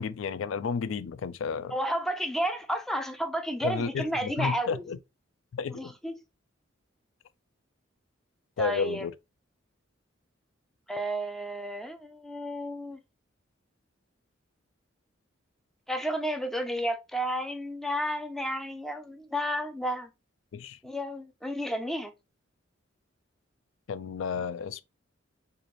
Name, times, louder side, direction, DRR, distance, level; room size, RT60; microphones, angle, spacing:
voice 1, 0.0-1.7 3.6-5.0 5.5-5.9 8.6-9.1 20.5-20.8 23.9-24.8, left 5 dB, 75° left, 0.3 m, -32 dB
voice 2, 1.7-4.9 5.7-6.2 8.6-9.1 10.9-13.0 15.9-20.1 20.8-22.1, equal, ahead, 0.4 m, -32 dB
4.1 x 2.5 x 3.2 m
head